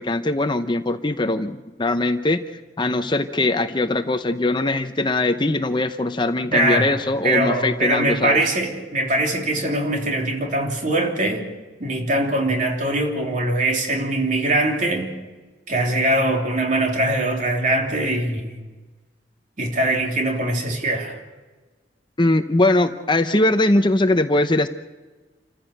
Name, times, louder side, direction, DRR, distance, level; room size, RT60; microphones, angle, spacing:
voice 1, 0.0-2.4 2.8-8.4 22.2-24.7, left 2 dB, 25° left, 9 dB, 0.8 m, -21 dB
voice 2, 6.5-7.0 7.2-11.5 11.8-15.1 15.7-18.5 19.6-21.2, right 1 dB, 45° right, 2 dB, 3.4 m, -22 dB
28.5 x 14.5 x 6.6 m, 1.3 s
head